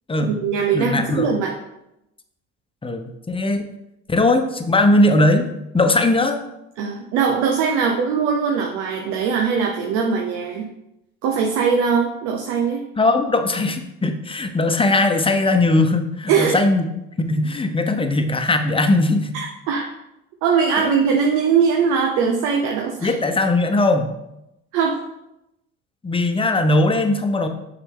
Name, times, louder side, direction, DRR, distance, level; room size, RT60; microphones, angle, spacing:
voice 1, 0.2-1.6 6.8-10.7 11.2-12.8 16.3-16.6 19.3-19.9 20.4-23.1 24.7-25.0, right 6 dB, 85° right, 2 dB, 0.8 m, -21 dB
voice 2, 0.7-1.3 2.8-3.7 4.1-5.5 5.7-6.4 13.0-16.9 17.2-19.3 20.8-20.9 23.0-24.1 26.0-27.5, left 2 dB, 20° left, 7 dB, 0.9 m, -19 dB
7.0 x 5.8 x 3.8 m, 0.88 s
supercardioid pair, 85°, 29 cm